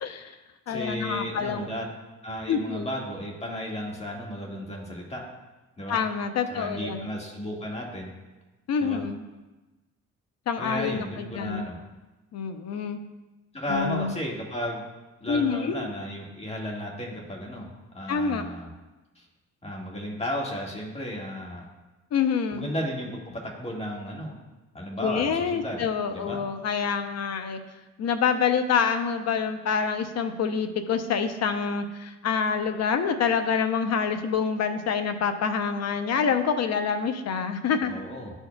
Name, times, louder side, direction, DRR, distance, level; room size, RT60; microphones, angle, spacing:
voice 1, 0.0-0.4 0.7-1.7 2.5-2.9 5.9-7.1 8.7-9.2 10.5-11.6 12.3-13.0 13.7-14.2 15.3-15.9 18.1-18.4 22.1-22.7 25.0-27.6 28.0-38.0, left 6 dB, 60° left, 9 dB, 0.7 m, -27 dB
voice 2, 0.7-1.9 2.2-5.2 5.8-6.0 6.5-8.1 8.8-9.0 10.6-11.8 13.5-14.8 15.2-18.7 19.1-19.3 19.6-21.7 22.5-24.4 24.7-25.8 26.1-26.4 37.9-38.3, equal, 20° left, -1 dB, 1.7 m, -34 dB
12.0 x 4.5 x 2.2 m, 1.1 s
cardioid pair, 90°, 30 cm